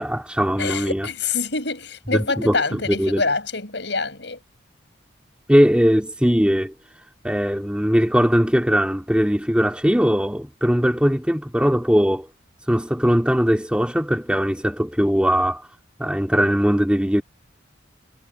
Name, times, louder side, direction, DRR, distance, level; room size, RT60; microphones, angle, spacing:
voice 1, 0.0-1.1 2.1-3.2 5.5-6.7 7.2-12.3 12.7-15.6 16.0-17.2, equal, 5° right, 2.2 m, -20 dB
voice 2, 0.6-4.4, left 4 dB, 65° left, 6.6 m, -26 dB
head